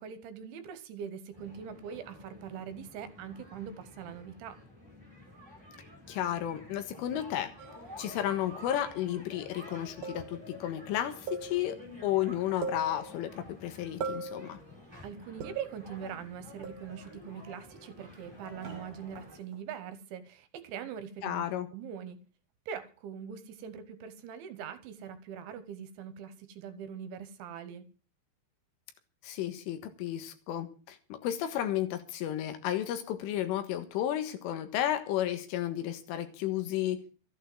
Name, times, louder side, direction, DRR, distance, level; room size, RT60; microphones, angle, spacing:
voice 1, 0.0-4.6 15.0-21.5 21.7-22.2 22.7-27.9, right 8 dB, 75° right, 3.2 m, -42 dB
sound 1, 1.3-19.4, left 1 dB, 5° right, 6.0 m, -51 dB
voice 2, 6.1-7.5 8.0-14.6 21.2-21.7 29.2-37.0, left 12 dB, 80° left, 4.0 m, -33 dB
sound 2, 7.6-7.9 8.7-9.2 10.0-10.6 11.3-11.9 12.2-12.3 12.6-13.4 14.0-14.6 15.4-15.9 16.6-17.1 18.6-19.6, right 4 dB, 40° right, 2.8 m, -41 dB
14.0 x 9.2 x 7.6 m
omnidirectional pair, 5.8 m